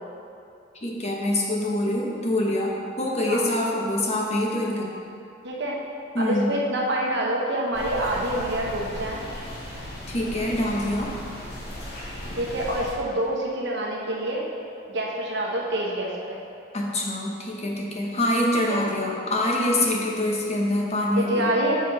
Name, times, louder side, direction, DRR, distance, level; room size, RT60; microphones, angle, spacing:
voice 1, 0.8-4.9 6.1-6.5 10.1-11.1 16.7-21.5, left 1 dB, 35° left, -2 dB, 0.9 m, -25 dB
voice 2, 5.4-5.8 6.2-9.2 12.4-14.5 14.9-16.4 18.6-18.8 21.2-21.8, right 1 dB, 65° right, -2 dB, 1.0 m, -26 dB
sound 1, 7.7-12.9, left 1 dB, 55° left, 1.1 m, -37 dB
6.7 x 5.2 x 3.9 m, 2.6 s
head